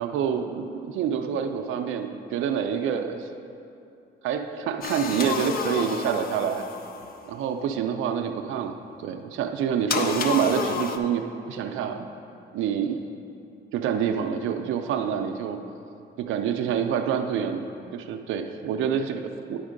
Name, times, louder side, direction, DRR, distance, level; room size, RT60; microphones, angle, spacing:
voice 1, 0.0-3.3 4.2-6.6 7.3-12.1 12.5-13.0 13.7-15.6 16.2-17.6 17.9-19.6, right 8 dB, 85° right, 5 dB, 0.5 m, -27 dB
sound 1, 4.8-7.3 9.9-11.0, left 5 dB, 50° left, 0.5 m, -30 dB
10.0 x 3.6 x 5.1 m, 2.6 s
cardioid pair, 90°, 20 cm